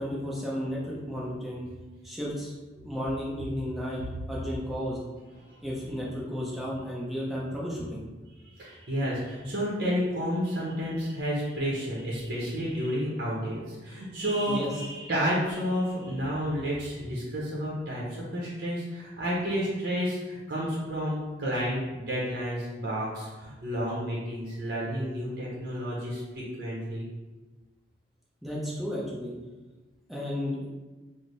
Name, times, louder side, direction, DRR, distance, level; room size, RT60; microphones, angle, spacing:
voice 1, 0.0-1.7 2.0-4.0 4.3-5.0 5.6-8.0 14.5-14.7 28.4-29.3 30.1-30.7, equal, ahead, -6 dB, 0.6 m, -33 dB
voice 2, 8.4-27.1, equal, 55° right, -6 dB, 0.7 m, -31 dB
3.3 x 2.0 x 4.0 m, 1.2 s
head